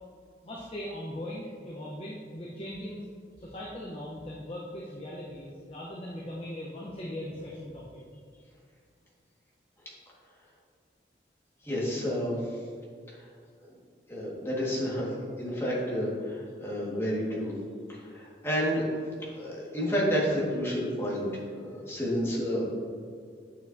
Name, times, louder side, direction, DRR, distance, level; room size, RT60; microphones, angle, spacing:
voice 1, 0.4-3.0 3.4-8.0, left 1 dB, 35° left, -4 dB, 0.8 m, -39 dB
voice 2, 11.6-12.6 13.1-13.3 13.6-13.7 14.1-17.5 17.9-18.9 19.3-22.7, equal, 15° left, -6 dB, 1.6 m, -30 dB
8.1 x 7.0 x 2.6 m, 2.1 s
head